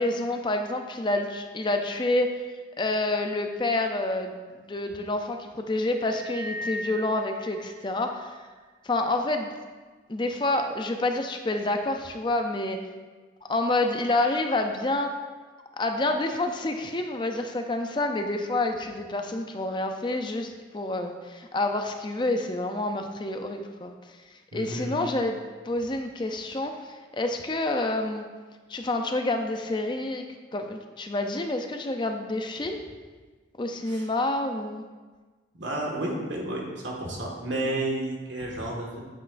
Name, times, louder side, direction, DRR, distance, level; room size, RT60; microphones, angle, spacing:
voice 1, 0.0-2.4 2.8-8.3 8.8-9.5 10.1-12.8 13.5-15.1 15.8-23.9 24.5-25.4 25.6-28.2 28.7-30.2 30.5-32.8 33.6-34.8, left 2 dB, 25° left, 5 dB, 0.5 m, -28 dB
sound 1, 6.0-8.6, equal, 40° right, 2.4 m, -39 dB
voice 2, 24.5-25.0 33.8-34.1 35.6-39.0, right 1 dB, 80° right, -2 dB, 1.7 m, -31 dB
8.7 x 8.2 x 2.5 m, 1.4 s
head